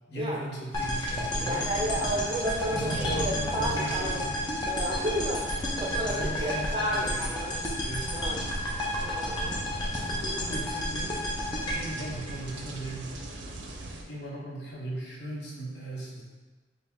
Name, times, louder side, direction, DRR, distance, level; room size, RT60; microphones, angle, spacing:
voice 1, 0.1-2.1 2.7-4.4 6.0-7.4 7.9-8.1 9.9-11.2 11.7-13.2 14.1-16.2, right 1 dB, 65° left, -4 dB, 0.9 m, -37 dB
sound 1, 0.7-12.9, left 1 dB, 25° left, 0.5 m, -32 dB
sound 2, 0.7-14.0, right 2 dB, 80° right, 0.5 m, -39 dB
voice 2, 1.4-4.2 4.7-7.6 8.1-8.4 9.0-9.7, right 1 dB, 25° right, -2 dB, 0.5 m, -32 dB
5.1 x 2.2 x 3.0 m, 1.3 s
head